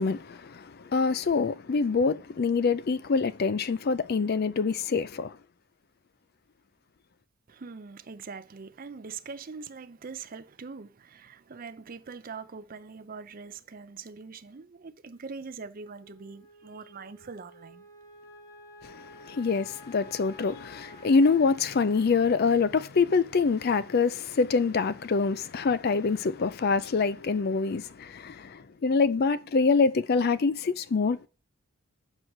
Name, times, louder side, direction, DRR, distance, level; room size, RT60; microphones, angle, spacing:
voice 1, 0.0-5.4 18.8-31.3, left 4 dB, 45° left, 0.4 m, -25 dB
voice 2, 7.5-17.8, right 5 dB, 40° right, 0.5 m, -43 dB
Wind instrument woodwind instrument, 15.8-24.3, equal, 15° left, 1.1 m, -52 dB
7.3 x 4.7 x 6.5 m
head